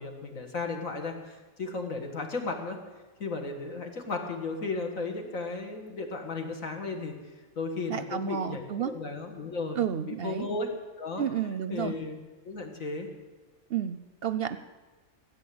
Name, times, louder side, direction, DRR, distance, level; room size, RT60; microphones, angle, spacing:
voice 1, 0.0-2.8 3.2-7.1 7.6-9.8 10.1-10.7 11.0-11.2 11.7-12.2 12.4-13.1, left 3 dB, 85° left, 3 dB, 2.3 m, -34 dB
voice 2, 7.9-8.9 9.7-10.5 11.2-11.9 13.7-14.6, right 9 dB, 60° right, 12 dB, 0.7 m, -31 dB
15.5 x 8.3 x 8.6 m, 1.3 s
omnidirectional pair, 1.4 m